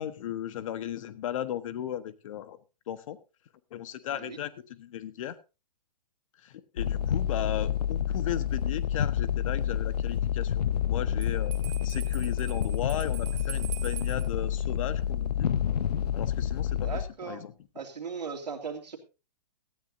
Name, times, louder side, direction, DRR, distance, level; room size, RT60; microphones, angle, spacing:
voice 1, 0.0-2.6 2.9-3.2 3.7-5.4 6.4-11.5 11.8-15.5 16.1-17.5, left 11 dB, 50° left, 13 dB, 1.3 m, -36 dB
sound 1, 6.8-17.1, left 9 dB, 70° left, 0.8 m, -29 dB
Bell, 11.2-14.3, right 12 dB, 20° right, 1.6 m, -44 dB
voice 2, 16.7-17.4 17.7-19.0, right 5 dB, 85° right, 4 dB, 2.8 m, -38 dB
18.0 x 13.5 x 2.7 m, 0.30 s
hypercardioid pair, 130°, 21 cm